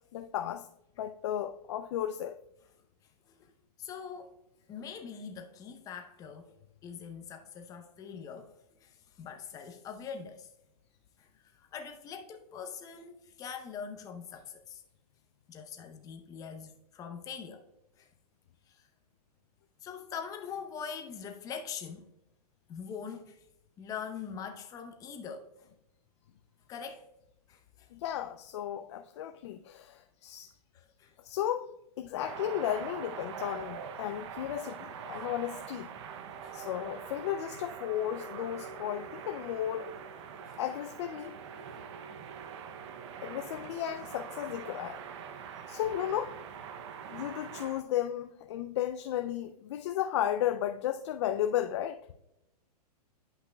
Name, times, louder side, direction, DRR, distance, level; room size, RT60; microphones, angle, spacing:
voice 1, 0.1-0.7 1.0-2.4 27.9-30.6 31.2-31.7 32.0-35.9 36.5-40.0 40.6-41.4 43.2-45.0 45.7-46.4 47.1-52.0, left 11 dB, 45° left, 0.4 m, -34 dB
voice 2, 3.8-4.4 4.7-6.6 6.8-10.5 11.2-14.8 15.5-17.7 18.0-18.1 18.7-18.9 19.8-22.1 22.7-23.4 23.8-25.7 26.7-27.1 27.5-27.9 30.7-31.2 36.4-36.7 40.5-40.6, left 6 dB, 15° left, 0.7 m, -43 dB
sound 1, 32.2-47.8, right 7 dB, 45° right, 0.6 m, -43 dB
10.5 x 5.5 x 2.2 m
hypercardioid pair, 150°, 21 cm